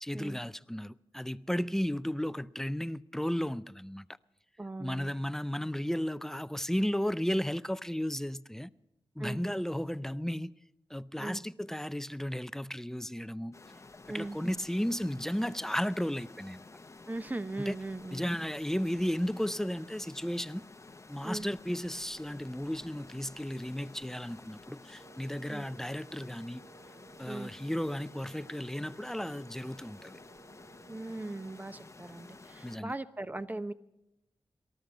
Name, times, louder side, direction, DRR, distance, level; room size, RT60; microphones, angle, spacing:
voice 1, 0.0-4.1 4.8-8.7 9.2-10.5 10.9-13.6 14.1-16.6 17.7-17.8 18.1-20.6 21.1-26.6 27.2-30.2 32.6-32.9, equal, 5° left, 0.5 m, -34 dB
voice 2, 4.6-5.1 9.2-9.4 11.2-11.4 14.1-14.4 17.1-18.3 21.2-21.5 25.5-25.6 27.2-27.5 30.9-33.7, right 2 dB, 20° right, 0.9 m, -39 dB
sound 1, 13.5-32.8, left 3 dB, 30° left, 0.8 m, -52 dB
Wind instrument woodwind instrument, 25.0-31.7, right 9 dB, 45° right, 0.9 m, -60 dB
19.0 x 13.0 x 5.4 m
cardioid pair, 50°, 9 cm